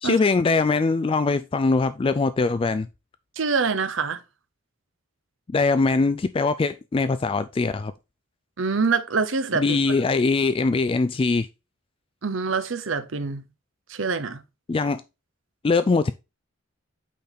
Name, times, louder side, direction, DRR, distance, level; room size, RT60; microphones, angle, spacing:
voice 1, 0.0-2.9 5.5-7.9 9.5-11.5 14.7-15.0 15.6-16.1, left 3 dB, 25° left, 0.3 m, -22 dB
voice 2, 3.4-4.2 8.6-9.6 12.2-13.4 13.9-14.4, right 4 dB, 65° right, 0.8 m, -25 dB
8.4 x 4.0 x 4.1 m
head